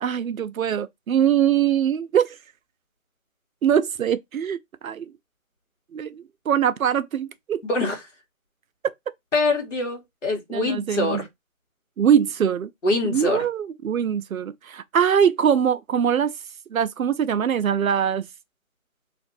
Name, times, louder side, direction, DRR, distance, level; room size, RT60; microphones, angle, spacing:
voice 1, 0.0-2.4 3.6-4.6 4.8-5.1 5.9-7.6 10.5-11.2 12.0-12.7 13.0-16.3 16.7-18.3, right 8 dB, 75° right, 0.5 m, -22 dB
voice 2, 7.7-8.0 9.3-11.3 12.8-13.4, left 2 dB, 60° left, 1.4 m, -24 dB
2.6 x 2.5 x 3.8 m
hypercardioid pair, 175°, 42 cm